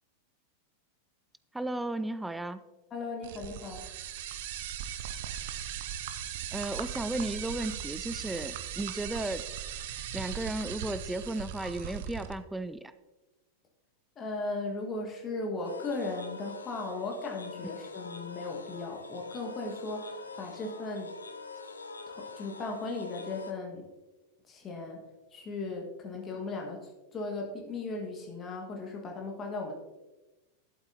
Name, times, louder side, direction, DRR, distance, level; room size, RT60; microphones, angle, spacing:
voice 1, 1.5-2.6 6.5-9.5 10.1-12.9, right 2 dB, 5° right, 13 dB, 0.3 m, -34 dB
voice 2, 2.9-3.9 14.2-21.1 22.1-23.9 24.5-25.0 25.3-29.7, left 3 dB, 25° left, 1 dB, 1.4 m, -37 dB
sound 1, 3.2-12.3, right 9 dB, 55° right, 0.6 m, -38 dB
sound 2, 15.6-23.5, left 4 dB, 75° left, 0.6 m, -45 dB
12.0 x 7.9 x 2.7 m, 1.1 s
figure-of-eight pair, 90°, 0 cm